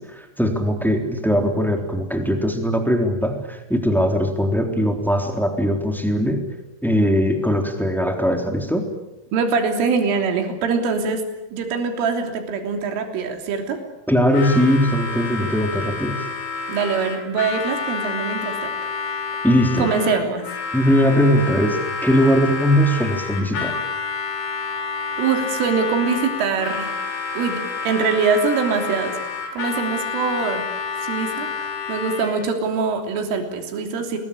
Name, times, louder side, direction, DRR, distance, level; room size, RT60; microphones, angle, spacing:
voice 1, 0.1-6.4 6.8-8.8 14.1-16.2 19.4-19.9 20.7-23.7, equal, ahead, 3 dB, 2.3 m, -20 dB
voice 2, 9.3-11.2 11.5-13.8 16.7-18.9 19.8-20.5 25.2-26.9 27.4-29.2 29.5-30.7 31.0-34.2, right 5 dB, 70° right, 4 dB, 5.6 m, -23 dB
Harmonica, 14.3-32.5, left 5 dB, 50° left, 4.3 m, -29 dB
28.0 x 21.5 x 8.7 m, 0.97 s
omnidirectional pair, 5.9 m